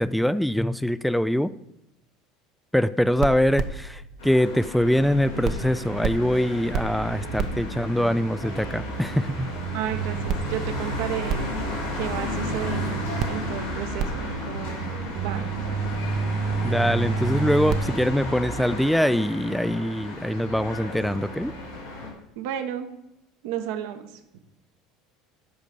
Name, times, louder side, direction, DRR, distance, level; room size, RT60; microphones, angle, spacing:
voice 1, 0.0-1.5 2.7-9.5 16.6-21.5, equal, ahead, 14 dB, 0.4 m, -23 dB
sound 1, 3.1-5.1 5.4-18.9, right 5 dB, 55° right, 0.8 m, -31 dB
sound 2, 4.2-22.1, left 2 dB, 90° left, 3.0 m, -34 dB
voice 2, 9.7-11.5 11.9-14.8 15.1-15.7 22.4-22.9 23.4-24.2, right 10 dB, 70° right, 7 dB, 1.1 m, -33 dB
8.5 x 5.1 x 6.8 m, 0.86 s
hypercardioid pair, 75°, 0 cm